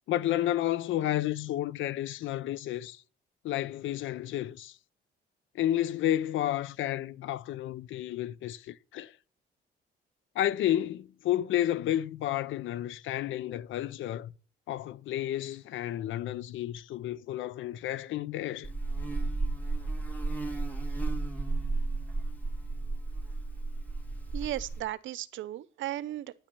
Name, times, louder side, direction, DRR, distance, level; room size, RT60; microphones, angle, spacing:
voice 1, 0.1-3.0 3.4-4.8 5.5-9.1 10.3-14.3 14.7-18.7, left 12 dB, 80° left, 0.7 m, -31 dB
Buzz, 18.6-24.8, right 3 dB, 10° left, 2.7 m, -33 dB
voice 2, 24.3-26.3, right 13 dB, 75° right, 0.8 m, -35 dB
10.0 x 9.0 x 6.7 m
cardioid pair, 90°, 20 cm